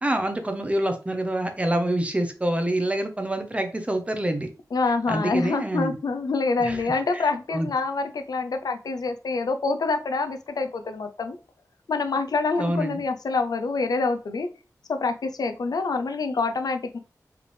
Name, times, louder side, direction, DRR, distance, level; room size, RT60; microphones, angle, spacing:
voice 1, 0.0-4.5 5.1-5.9 6.6-6.8 7.1-7.7 12.6-13.0, right 1 dB, 20° right, 6 dB, 0.8 m, -26 dB
voice 2, 4.7-11.4 11.9-14.5 14.9-17.0, left 4 dB, 90° left, 8 dB, 0.5 m, -26 dB
4.8 x 3.4 x 3.2 m, 0.34 s
wide cardioid pair, 85°, 6 cm